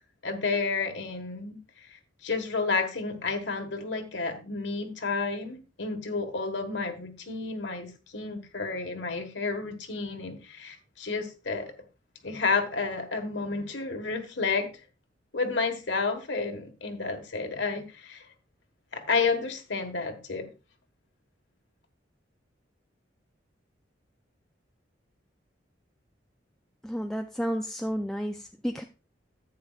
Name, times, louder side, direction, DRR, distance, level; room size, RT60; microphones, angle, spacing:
voice 1, 0.2-11.7 12.2-14.7 15.3-18.3 18.9-20.5, left 4 dB, 75° left, 6 dB, 1.4 m, -31 dB
voice 2, 26.8-28.8, equal, 5° left, 4 dB, 0.4 m, -31 dB
11.0 x 8.8 x 2.3 m, 0.30 s
head